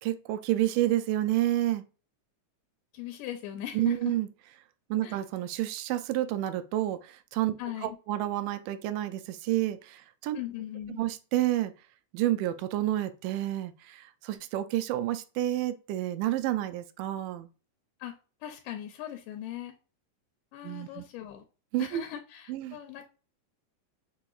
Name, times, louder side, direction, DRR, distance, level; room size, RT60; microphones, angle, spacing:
voice 1, 0.0-1.8 3.7-4.3 4.9-7.5 7.8-10.4 11.0-11.7 12.1-17.5 20.6-21.0 21.7-22.0 22.5-22.8, right 14 dB, 80° right, 2.1 m, -29 dB
voice 2, 2.9-4.1 5.0-5.2 7.6-8.0 10.3-11.0 18.0-18.1 18.4-19.7 20.5-21.5 21.8-23.1, left 12 dB, 80° left, 2.2 m, -39 dB
6.1 x 2.9 x 2.4 m
omnidirectional pair, 3.9 m